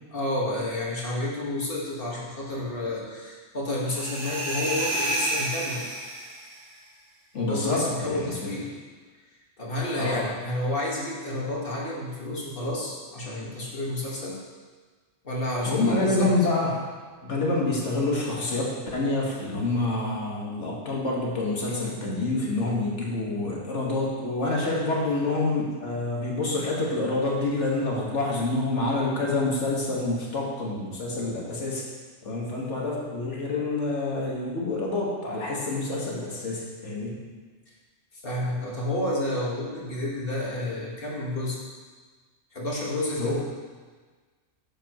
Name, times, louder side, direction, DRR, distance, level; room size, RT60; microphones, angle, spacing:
voice 1, 0.1-5.9 7.3-8.8 9.6-14.4 15.2-16.3 38.1-41.6 42.5-43.4, left 1 dB, 45° left, -4 dB, 1.9 m, -30 dB
sound 1, 3.9-6.6, right 1 dB, 60° right, 1.5 m, -30 dB
voice 2, 7.3-8.5 9.9-10.3 15.7-16.8 17.2-31.8 32.2-37.2 43.2-43.4, left 2 dB, 65° left, -3 dB, 2.0 m, -27 dB
10.5 x 7.2 x 3.1 m, 1.4 s
omnidirectional pair, 1.3 m